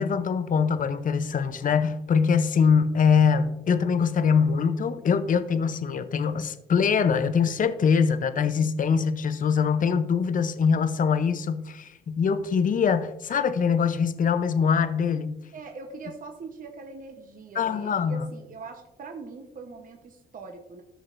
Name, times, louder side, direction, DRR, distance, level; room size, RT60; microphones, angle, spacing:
voice 1, 0.0-15.4 17.6-18.3, left 6 dB, 45° left, 12 dB, 0.7 m, -23 dB
voice 2, 15.5-20.8, right 4 dB, 45° right, 4 dB, 1.0 m, -42 dB
13.5 x 6.4 x 2.6 m, 0.91 s
cardioid pair, 90°, 20 cm